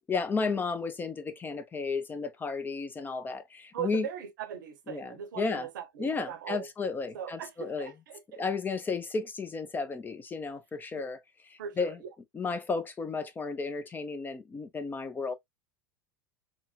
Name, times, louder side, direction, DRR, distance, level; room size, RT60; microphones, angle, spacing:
voice 1, 0.0-4.1 4.9-5.7 6.0-7.9 8.4-11.2 11.5-12.0 12.3-15.3, left 4 dB, 15° left, 0.4 m, -33 dB
voice 2, 3.7-6.7 7.1-8.4 11.6-12.1, right 9 dB, 60° right, 0.7 m, -39 dB
3.7 x 2.1 x 2.3 m
figure-of-eight pair, 85°, 12 cm